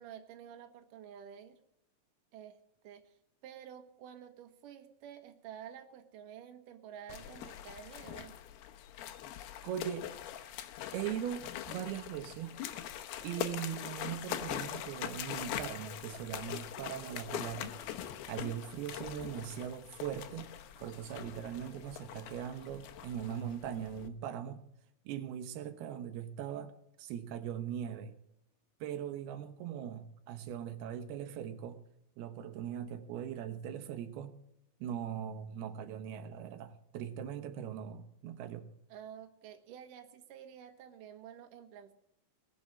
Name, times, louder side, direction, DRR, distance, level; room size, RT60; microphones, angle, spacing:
voice 1, 0.0-1.6 2.3-2.6 2.8-3.1 3.4-8.4 38.9-41.9, right 9 dB, 65° right, 5 dB, 2.7 m, -50 dB
sound 1, 7.1-24.1, left 11 dB, 85° left, 2.9 m, -43 dB
voice 2, 9.6-10.1 10.9-12.5 13.2-17.7 18.3-20.5 20.8-24.6 25.1-26.7 27.0-28.1 28.8-31.8 32.2-34.3 34.8-38.7, right 9 dB, 90° right, 8 dB, 3.0 m, -40 dB
sound 2, 11.2-23.9, left 4 dB, 40° left, 2.6 m, -61 dB
20.0 x 7.1 x 7.6 m, 0.79 s
omnidirectional pair, 4.4 m